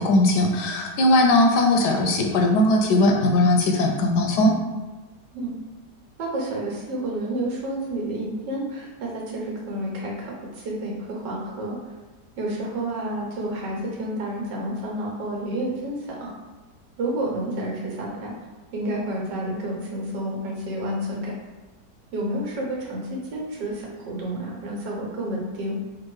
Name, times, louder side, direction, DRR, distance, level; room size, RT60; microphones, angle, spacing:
voice 1, 0.0-4.5, left 1 dB, 75° left, 2 dB, 1.2 m, -19 dB
voice 2, 6.2-11.8 12.4-16.3 17.0-18.3 18.7-21.3 22.1-25.8, right 1 dB, 80° right, -2 dB, 1.7 m, -30 dB
3.6 x 2.6 x 4.6 m, 1.2 s
omnidirectional pair, 1.8 m